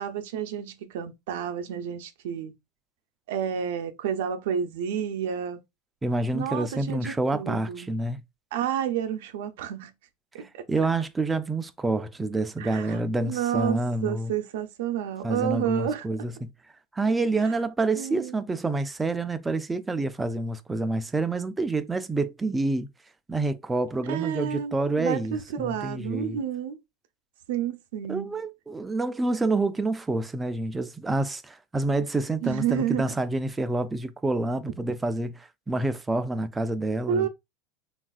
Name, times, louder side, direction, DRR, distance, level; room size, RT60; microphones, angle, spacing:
voice 1, 0.0-2.5 3.3-5.6 6.3-7.9 8.5-9.9 10.3-10.6 12.6-16.1 17.4-17.5 17.9-18.4 24.0-26.8 27.5-28.4 32.4-33.1 37.1-37.3, right 9 dB, 80° right, 0.5 m, -30 dB
voice 2, 6.0-8.2 10.7-14.3 15.2-16.5 16.9-22.9 23.3-26.4 28.1-37.3, right 2 dB, 10° right, 0.3 m, -28 dB
3.4 x 2.4 x 2.3 m
supercardioid pair, 120°, 0 cm